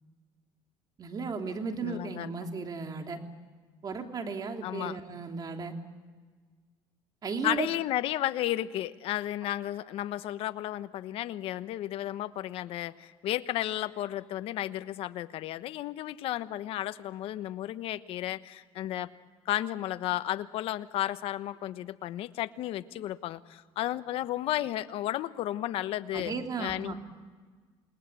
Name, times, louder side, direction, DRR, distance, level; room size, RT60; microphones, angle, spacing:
voice 1, 1.0-3.2 3.8-5.7 7.2-7.7 26.1-26.9, right 4 dB, 40° right, 4 dB, 3.2 m, -35 dB
voice 2, 1.8-2.3 4.6-5.0 7.4-19.1 19.5-26.9, left 13 dB, 75° left, 12 dB, 1.1 m, -33 dB
28.5 x 20.0 x 8.3 m, 1.5 s
cardioid pair, 100°, 10 cm